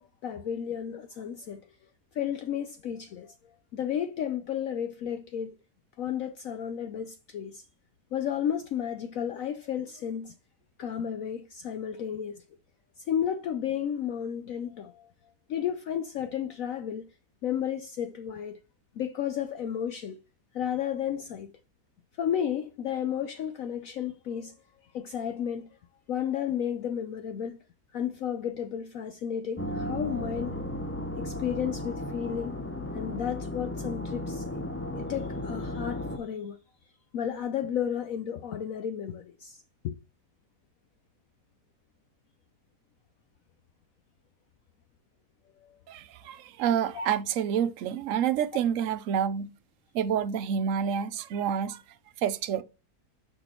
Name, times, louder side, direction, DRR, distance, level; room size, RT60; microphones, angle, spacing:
voice 1, 0.0-1.6 2.1-3.3 3.7-5.6 6.0-7.6 8.1-10.3 10.8-12.4 13.1-15.1 15.5-17.1 17.4-18.6 19.0-20.2 20.5-21.5 22.2-24.5 24.9-25.7 26.1-27.6 27.9-30.6 31.2-32.6 32.9-34.6 35.0-36.6 37.1-40.0 45.6-45.8 46.9-47.1, left 9 dB, 65° left, 1.0 m, -32 dB
sound 1, 29.6-36.2, left 1 dB, 15° left, 0.5 m, -35 dB
voice 2, 45.9-49.5 49.9-51.8 52.2-52.6, right 8 dB, 60° right, 1.0 m, -28 dB
6.8 x 6.1 x 4.4 m
omnidirectional pair, 1.7 m